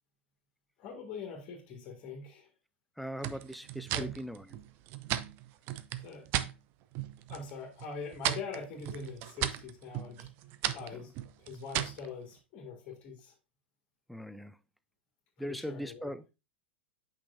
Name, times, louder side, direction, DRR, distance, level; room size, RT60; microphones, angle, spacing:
voice 1, 0.8-2.5 3.9-4.1 6.0-6.3 7.3-10.3 10.7-11.1 11.4-13.3 15.4-16.1, left 5 dB, 35° left, 2.0 m, -43 dB
voice 2, 3.0-4.5 14.1-14.6 15.4-16.3, equal, ahead, 0.5 m, -40 dB
sound 1, 3.2-6.5 6.9-7.5 7.8-12.1, right 13 dB, 40° right, 0.6 m, -36 dB
8.5 x 5.7 x 2.6 m
figure-of-eight pair, 90°, 6 cm